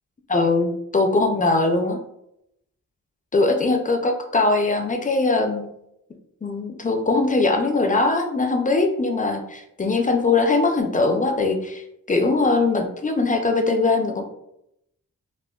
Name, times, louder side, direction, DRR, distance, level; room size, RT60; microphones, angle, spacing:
voice 1, 0.3-2.0 3.3-5.7 6.4-14.2, left 3 dB, 25° left, 4 dB, 0.3 m, -21 dB
3.5 x 2.0 x 2.2 m, 0.81 s
wide cardioid pair, 105°, 35 cm